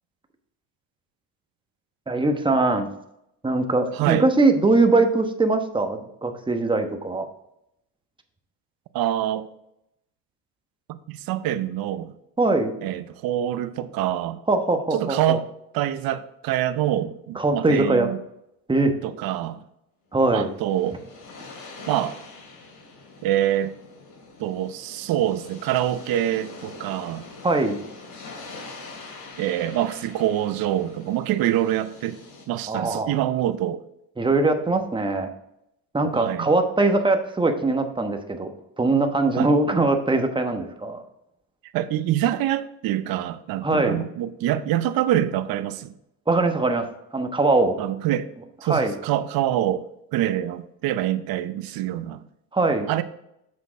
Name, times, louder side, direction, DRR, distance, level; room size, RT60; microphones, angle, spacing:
voice 1, 2.1-2.9 3.4-7.3 12.4-12.8 14.5-15.4 17.3-18.1 18.7-19.0 20.1-20.5 27.4-27.8 32.7-33.1 34.2-35.3 35.9-38.5 38.8-41.0 43.6-44.0 46.3-46.9 47.1-47.8 48.6-48.9 52.5-52.9, right 2 dB, 15° right, 1.0 m, -21 dB
voice 2, 3.9-4.2 8.9-9.5 10.9-12.1 12.8-14.4 14.9-15.5 15.7-18.2 19.0-19.6 20.3-21.0 21.9-22.2 23.2-23.8 24.4-27.3 29.4-32.2 32.5-33.8 36.1-36.5 39.4-39.5 41.7-45.9 47.8-48.3 48.6-49.9 50.1-52.2 52.9-53.0, right 12 dB, 65° right, 0.7 m, -25 dB
sound 1, 20.2-32.4, left 3 dB, 75° left, 3.0 m, -43 dB
7.1 x 6.3 x 3.6 m
cardioid pair, 100°, 38 cm